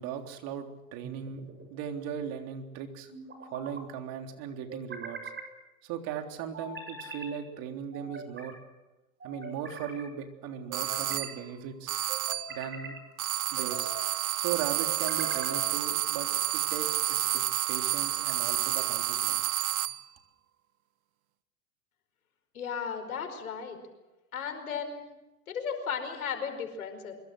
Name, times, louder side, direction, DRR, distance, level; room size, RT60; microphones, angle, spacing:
voice 1, 0.0-1.4 1.7-3.1 3.5-5.3 5.8-8.6 9.2-12.0 12.5-13.0 13.5-13.9 14.4-19.5, right 8 dB, 55° right, 4 dB, 3.6 m, -38 dB
sound 1, 1.0-1.7 3.1-3.8 4.7-5.5 6.5-7.3 7.9-8.6 9.2-10.0 10.7-11.4 12.1-13.0 13.6-14.1 14.8-15.7, right 3 dB, 25° right, 7.8 m, -42 dB
sound 2, 10.7-11.4 11.9-12.6 13.2-20.1, right 13 dB, 85° right, 1.1 m, -30 dB
voice 2, 22.5-23.8 24.3-25.1 25.5-27.1, left 6 dB, 90° left, 6 dB, 5.1 m, -35 dB
24.5 x 23.0 x 6.5 m, 1.1 s
hypercardioid pair, 100°, 42 cm